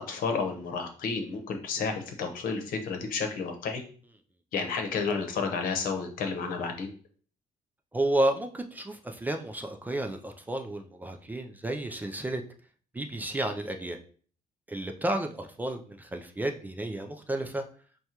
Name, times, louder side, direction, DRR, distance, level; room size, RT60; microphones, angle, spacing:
voice 1, 0.0-3.8 4.5-6.9, left 5 dB, 80° left, 4 dB, 0.8 m, -31 dB
voice 2, 7.9-12.4 12.9-14.0 14.7-17.6, right 1 dB, 10° right, 5 dB, 0.3 m, -31 dB
6.1 x 2.2 x 2.8 m, 0.43 s
cardioid pair, 140°, 14 cm